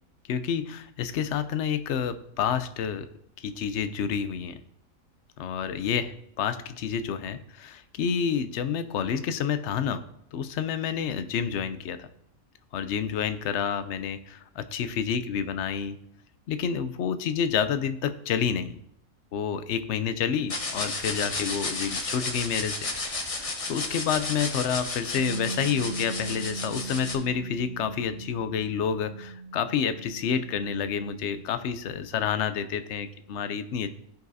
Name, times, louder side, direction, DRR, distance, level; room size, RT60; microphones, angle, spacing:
voice 1, 0.3-3.1 3.4-4.6 5.4-10.0 10.3-12.1 12.7-16.0 16.5-18.8 19.3-22.9 23.2-33.9, left 7 dB, 65° left, 11 dB, 0.8 m, -29 dB
sound 1, 20.5-27.1, left 3 dB, 30° left, 0.8 m, -33 dB
Bass guitar, 25.2-31.4, right 3 dB, 75° right, 1.4 m, -38 dB
16.0 x 5.4 x 2.7 m, 0.72 s
omnidirectional pair, 1.5 m